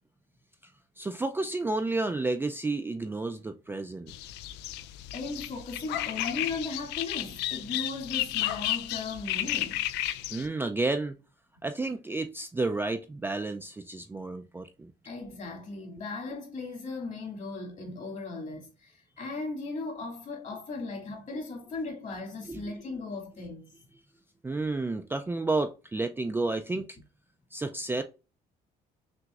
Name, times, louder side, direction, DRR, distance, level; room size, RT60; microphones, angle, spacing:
voice 1, 1.0-4.1 10.3-11.2 11.6-14.9 22.5-22.7 24.4-26.9 27.5-28.0, right 2 dB, 15° right, 0.3 m, -31 dB
sound 1, 4.1-10.5, left 13 dB, 85° left, 0.4 m, -33 dB
voice 2, 5.1-9.8 15.0-23.7 26.7-26.8, left 3 dB, 45° left, 2.0 m, -37 dB
5.9 x 2.6 x 2.4 m
cardioid pair, 110°, 17 cm